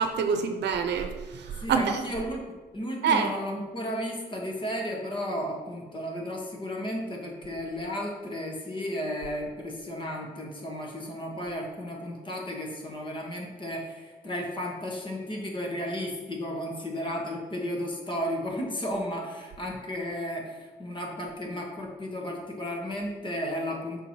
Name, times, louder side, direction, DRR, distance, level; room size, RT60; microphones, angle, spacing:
voice 1, 0.0-2.0 3.0-3.3, right 6 dB, 85° right, 7 dB, 0.7 m, -26 dB
voice 2, 1.6-2.5 2.7-24.1, equal, 30° left, -1 dB, 1.4 m, -34 dB
6.0 x 4.4 x 4.4 m, 1.3 s
cardioid pair, 115°, 18 cm